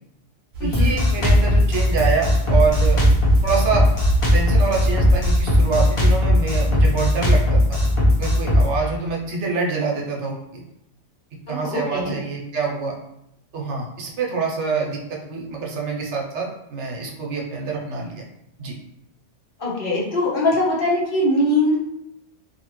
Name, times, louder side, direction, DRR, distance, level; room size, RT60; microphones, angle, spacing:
sound 1, 0.5-5.6, right 3 dB, 45° right, 0.7 m, -27 dB
voice 1, 0.6-3.0 3.4-3.9 4.3-7.8 8.2-10.6 11.5-13.0 13.5-18.2 18.6-18.7, right 5 dB, 75° right, -1 dB, 1.0 m, -26 dB
Drum kit, 0.7-8.7, left 1 dB, 30° left, 0.7 m, -17 dB
voice 2, 11.5-12.2 19.6-21.8, left 1 dB, 50° left, -5 dB, 1.0 m, -21 dB
2.7 x 2.6 x 3.0 m, 0.80 s
omnidirectional pair, 1.2 m